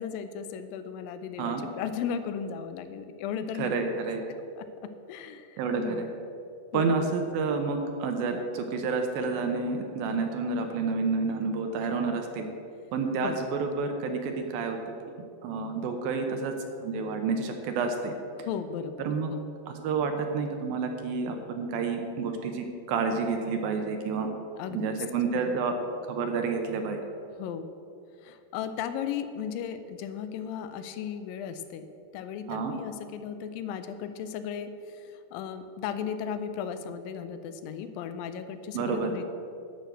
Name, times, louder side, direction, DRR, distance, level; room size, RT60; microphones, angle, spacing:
voice 1, 0.0-4.0 4.6-4.7 5.1-6.1 6.7-6.9 13.2-13.4 18.5-19.4 24.6-24.9 25.4-25.5 27.4-27.7 28.2-31.9 32.1-39.2, left 8 dB, 80° left, 10 dB, 2.2 m, -36 dB
voice 2, 3.6-4.2 5.6-6.1 6.7-12.5 12.9-14.8 15.4-16.5 16.8-18.1 19.0-19.3 19.7-24.3 24.7-25.8 26.1-27.0 32.5-32.8 38.7-39.2, right 4 dB, 75° right, 4 dB, 2.5 m, -29 dB
10.5 x 6.2 x 7.8 m, 2.6 s
omnidirectional pair, 4.5 m